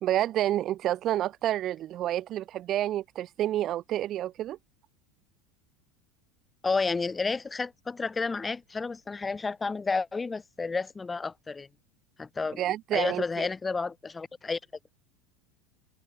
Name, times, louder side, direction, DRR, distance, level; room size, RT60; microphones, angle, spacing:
voice 1, 0.0-4.6 12.6-13.5, right 12 dB, 40° right, 1.3 m, -29 dB
voice 2, 6.6-11.7 12.2-14.6, left 4 dB, 15° left, 5.7 m, -31 dB
open air
supercardioid pair, 125°, 0 cm